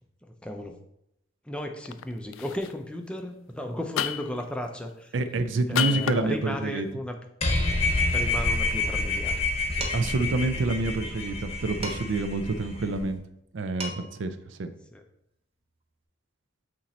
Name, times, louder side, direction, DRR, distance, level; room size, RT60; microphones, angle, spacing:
voice 1, 0.4-0.8 1.5-5.1 5.7-7.2 8.1-9.5 9.7-9.9 10.3-10.5 14.9-15.0, left 1 dB, 5° left, 4 dB, 0.5 m, -35 dB
sound 1, 1.9-2.0 2.3-2.7 4.0-4.4 5.8-6.2, left 9 dB, 70° left, 0.3 m, -28 dB
voice 2, 5.1-6.9 9.9-13.2 13.5-14.7, right 3 dB, 60° right, 10 dB, 0.4 m, -28 dB
sound 2, 7.4-13.0, left 2 dB, 30° left, 0.9 m, -28 dB
Dishes pots and pans, 9.8-10.2 11.8-12.3 13.5-13.6 13.8-14.3, right 1 dB, 30° right, 0.9 m, -37 dB
8.4 x 3.0 x 4.2 m, 0.79 s
head